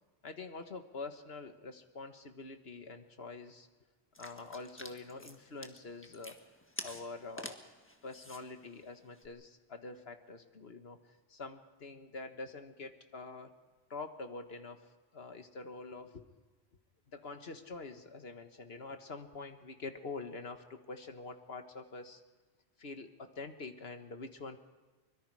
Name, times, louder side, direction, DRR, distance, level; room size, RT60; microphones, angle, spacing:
voice 1, 0.2-3.7 4.2-6.4 6.8-7.6 8.0-11.0 11.3-13.5 13.9-14.9 15.1-16.3 17.1-22.2 22.8-24.6, left 3 dB, 70° left, 7 dB, 1.8 m, -46 dB
sound 1, 4.1-9.3, left 1 dB, 10° left, 1.5 m, -49 dB
24.5 x 22.5 x 4.9 m, 1.3 s
omnidirectional pair, 1.1 m